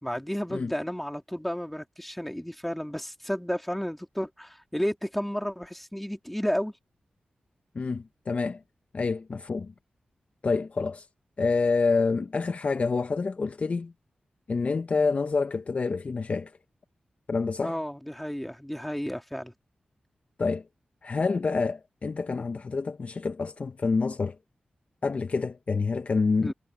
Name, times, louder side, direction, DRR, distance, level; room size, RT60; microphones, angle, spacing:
voice 1, 0.0-6.7 17.6-19.5 26.4-26.5, equal, 5° left, 2.5 m, -32 dB
voice 2, 7.7-8.6 8.9-9.7 10.4-11.1 11.4-13.9 14.5-16.5 17.3-17.7 20.4-20.6 21.0-24.4 25.0-26.5, left 4 dB, 45° left, 0.6 m, -27 dB
wide cardioid pair, 105°, 3 cm